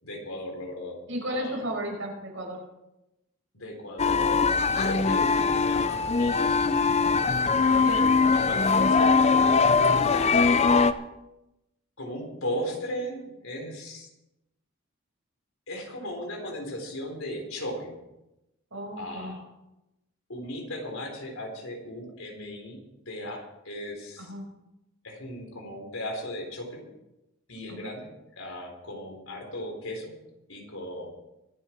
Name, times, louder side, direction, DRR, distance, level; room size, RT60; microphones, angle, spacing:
voice 1, 0.0-1.0 1.3-1.6 3.5-4.5 4.7-6.5 7.6-8.0 8.3-10.3 12.0-14.1 15.7-18.0 19.0-19.5 20.3-24.3 25.0-26.9 27.5-30.1 30.5-31.1, left 1 dB, 85° left, 2 dB, 4.1 m, -37 dB
voice 2, 1.1-2.6 7.8-8.1 18.7-19.4 24.2-24.4 27.7-27.9, equal, 70° right, 0 dB, 5.7 m, -34 dB
sound 1, 4.0-10.9, left 4 dB, 30° left, 0.6 m, -21 dB
24.5 x 8.5 x 4.6 m, 0.93 s
head